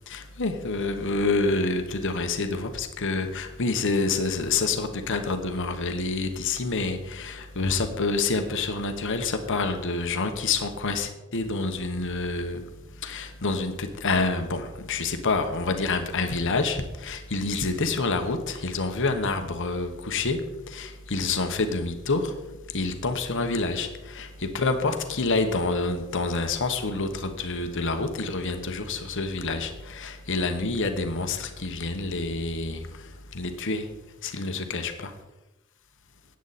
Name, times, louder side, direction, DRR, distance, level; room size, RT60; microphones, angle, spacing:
voice 1, 0.1-12.6 13.0-20.4 20.7-22.4 22.7-33.9 34.2-35.1, left 3 dB, 60° left, 6 dB, 1.2 m, -27 dB
14.0 x 9.5 x 4.2 m, 1.0 s
head